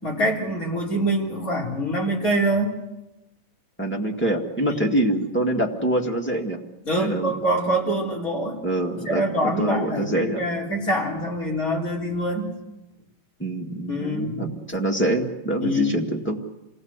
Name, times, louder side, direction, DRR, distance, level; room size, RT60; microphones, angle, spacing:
voice 1, 0.0-2.8 4.7-5.0 6.9-8.6 9.1-12.5 13.9-14.5 15.6-16.0, right 1 dB, 25° left, -2 dB, 4.0 m, -25 dB
voice 2, 3.8-6.6 7.0-7.3 8.6-10.4 13.4-16.4, right 1 dB, 5° left, 0 dB, 0.8 m, -25 dB
27.5 x 18.5 x 8.2 m, 1.0 s
omnidirectional pair, 3.9 m